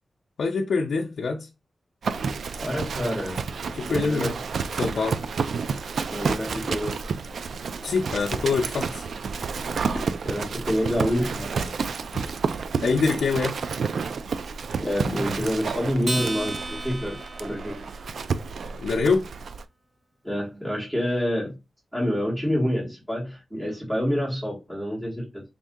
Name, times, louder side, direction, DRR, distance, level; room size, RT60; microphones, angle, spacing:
voice 1, 0.4-1.5 3.7-4.4 4.7-5.2 7.8-9.1 12.8-13.6 18.8-19.3, left 4 dB, 75° left, 0.5 m, -24 dB
Livestock farm animals working animals, 2.0-19.6, right 5 dB, 65° right, 0.3 m, -30 dB
voice 2, 2.6-3.4 3.8-4.3 6.1-7.0 10.2-11.7 14.8-17.9 20.2-21.6 21.9-25.4, equal, 5° right, 1.4 m, -27 dB
Acoustic guitar, 16.0-18.7, right 1 dB, 30° right, 0.8 m, -34 dB
3.7 x 2.7 x 3.5 m
wide cardioid pair, 165°, 0 cm